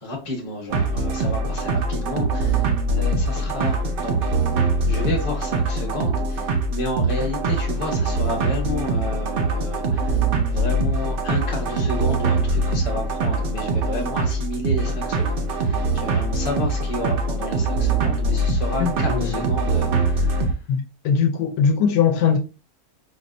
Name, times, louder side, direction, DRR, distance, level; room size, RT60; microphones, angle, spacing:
voice 1, 0.0-2.7 2.9-4.3 4.8-10.2 10.5-20.5, left 2 dB, 25° left, 0.8 m, -31 dB
sound 1, 0.7-20.5, right 3 dB, 85° right, 0.4 m, -23 dB
voice 2, 18.8-19.5 20.7-22.4, left 7 dB, 80° left, 1.1 m, -21 dB
3.9 x 2.1 x 2.5 m
omnidirectional pair, 1.6 m